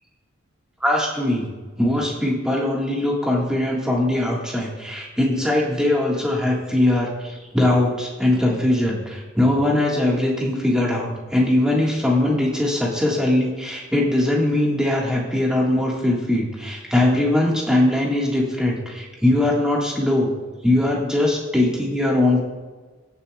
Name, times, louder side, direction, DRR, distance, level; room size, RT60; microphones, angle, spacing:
voice 1, 0.8-1.5 1.8-20.3 20.6-22.5, left 1 dB, 5° right, -3 dB, 1.6 m, -21 dB
17.5 x 6.9 x 2.3 m, 1.3 s
head